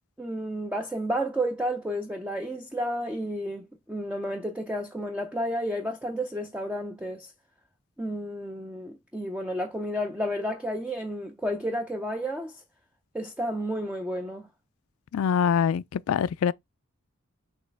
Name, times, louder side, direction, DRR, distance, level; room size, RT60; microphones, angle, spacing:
voice 1, 0.2-7.3 8.0-12.6 13.1-14.5, equal, 5° right, 0.4 m, -31 dB
voice 2, 15.1-16.5, left 7 dB, 80° left, 0.3 m, -24 dB
6.3 x 2.3 x 3.3 m
head